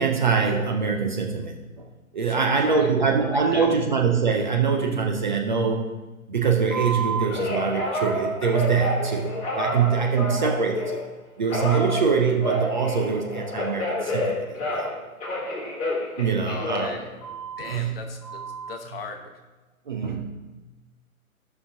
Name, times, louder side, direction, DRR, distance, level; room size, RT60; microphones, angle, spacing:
voice 1, 0.0-1.8 2.1-5.9 6.3-11.0 11.4-14.9 16.2-17.0 17.7-18.0 19.9-20.2, right 5 dB, 35° right, 2 dB, 0.6 m, -24 dB
voice 2, 2.3-3.7 16.4-18.4 18.7-19.3, left 4 dB, 40° left, 4 dB, 1.1 m, -38 dB
Telephone, 6.7-11.0 11.5-14.9 15.2-17.7 18.2-18.7, equal, 15° left, 2.1 m, -29 dB
14.5 x 5.7 x 2.6 m, 1.2 s
figure-of-eight pair, 135°, 43 cm